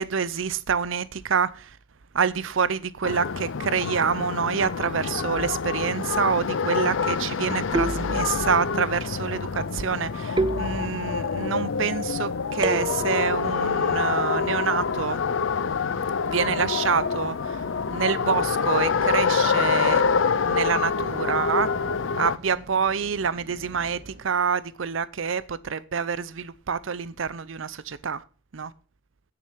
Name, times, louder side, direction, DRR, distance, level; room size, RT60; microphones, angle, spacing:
voice 1, 0.0-1.7 2.1-15.2 16.3-17.6 17.9-20.0 20.4-21.7 22.2-28.2 28.5-28.7, right 6 dB, 85° right, 0.6 m, -27 dB
sound 1, 3.0-22.4, left 5 dB, 80° left, 0.5 m, -26 dB
sound 2, 5.4-5.9 7.7-8.7 10.4-11.3 12.6-13.4, right 2 dB, 25° right, 0.4 m, -30 dB
sound 3, 6.4-24.2, equal, 55° right, 1.4 m, -47 dB
9.6 x 6.8 x 5.8 m
head